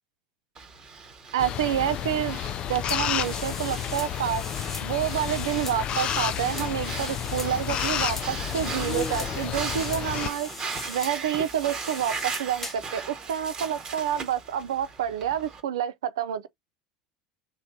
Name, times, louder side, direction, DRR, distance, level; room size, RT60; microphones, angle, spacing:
Breathing, 0.5-15.6, right 5 dB, 30° right, 1.1 m, -39 dB
voice 1, 1.3-2.4 2.7-4.5 4.8-10.5 10.9-16.5, right 10 dB, 75° right, 0.4 m, -28 dB
sound 1, 1.4-10.3, left 10 dB, 40° left, 0.3 m, -31 dB
sound 2, 2.9-12.9, left 2 dB, 15° left, 1.0 m, -40 dB
3.1 x 2.1 x 4.2 m
hypercardioid pair, 75°, 2 cm